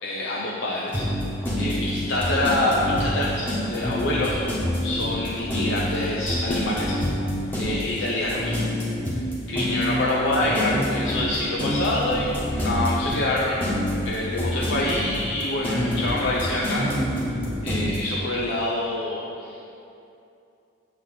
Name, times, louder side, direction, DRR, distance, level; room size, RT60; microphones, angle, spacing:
voice 1, 0.0-4.4 4.8-7.0 7.6-8.6 9.1-9.2 9.5-13.6 14.0-16.8 17.6-19.6, left 2 dB, 75° left, -5 dB, 0.9 m, -26 dB
sound 1, 0.9-18.0, equal, 10° left, 1.5 m, -26 dB
8.1 x 7.6 x 4.1 m, 2.7 s
head